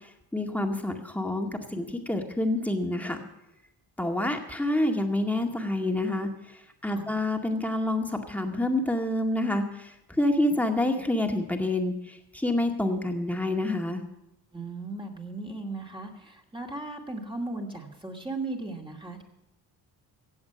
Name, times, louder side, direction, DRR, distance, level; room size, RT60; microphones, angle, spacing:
voice 1, 0.3-3.2 4.0-6.3 6.8-14.0, left 1 dB, 5° left, 3 dB, 2.1 m, -27 dB
voice 2, 14.5-19.2, right 2 dB, 10° right, 1 dB, 2.5 m, -37 dB
16.0 x 8.0 x 7.0 m, 0.88 s
cardioid pair, 85°, 40 cm